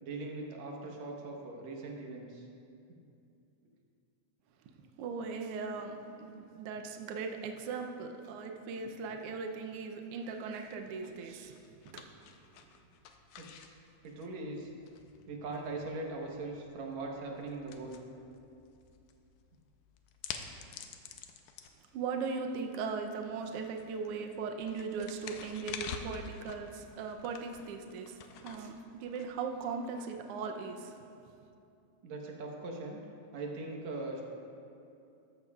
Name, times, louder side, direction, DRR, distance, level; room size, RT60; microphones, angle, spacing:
voice 1, 0.0-2.5 13.4-13.8 14.0-14.7 15.3-18.0 32.0-33.0 33.3-34.2, right 2 dB, 65° right, 0 dB, 2.4 m, -40 dB
voice 2, 5.0-11.6 11.9-12.1 21.9-31.0, right 5 dB, 85° right, 3 dB, 1.3 m, -39 dB
sound 1, 10.6-29.9, left 7 dB, 90° left, 2.1 m, -49 dB
13.5 x 13.5 x 2.4 m, 2.6 s
omnidirectional pair, 3.5 m